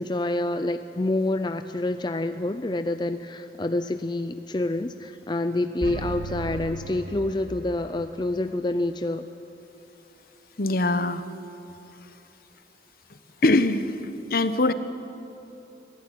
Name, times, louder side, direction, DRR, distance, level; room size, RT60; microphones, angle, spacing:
voice 1, 0.0-9.3, left 2 dB, 25° left, 9 dB, 0.5 m, -27 dB
sound 1, 5.8-7.9, right 2 dB, 55° right, 1.9 m, -35 dB
voice 2, 10.6-11.2 13.4-14.0 14.3-14.7, left 2 dB, 55° left, 11 dB, 1.0 m, -22 dB
24.0 x 16.0 x 9.2 m, 2.9 s
head